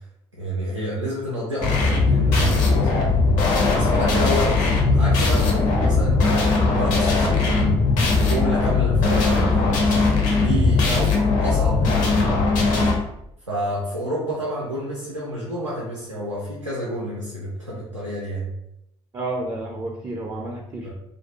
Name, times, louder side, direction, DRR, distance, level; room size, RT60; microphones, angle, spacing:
voice 1, 0.4-2.9 3.7-7.8 8.2-9.7 10.4-12.2 13.5-18.5 20.8-20.9, equal, 90° right, -7 dB, 0.4 m, -29 dB
sound 1, 1.6-12.9, left 3 dB, 55° left, 0.7 m, -19 dB
voice 2, 19.1-20.9, right 2 dB, 25° right, 0 dB, 0.4 m, -30 dB
2.4 x 2.1 x 2.7 m, 0.84 s
figure-of-eight pair, 50°, 15 cm